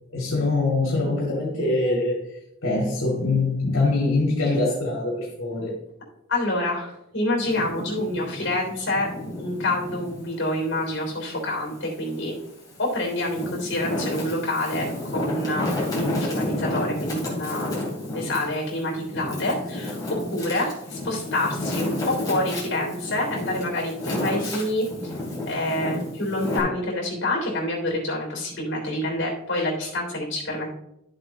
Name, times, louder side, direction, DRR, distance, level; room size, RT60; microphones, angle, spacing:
voice 1, 0.1-2.2 2.6-5.7, left 2 dB, 75° left, -4 dB, 2.2 m, -23 dB
voice 2, 6.3-9.1 9.4-12.3 12.8-14.9 15.1-15.7 15.9-17.8 18.1-20.0 20.3-25.1 25.5-30.7, left 1 dB, 55° left, 0 dB, 3.2 m, -27 dB
Wind, 7.4-10.2 10.7-12.0 12.6-26.6, left 1 dB, 20° left, 2.8 m, -31 dB
11.5 x 7.6 x 2.9 m, 0.81 s
head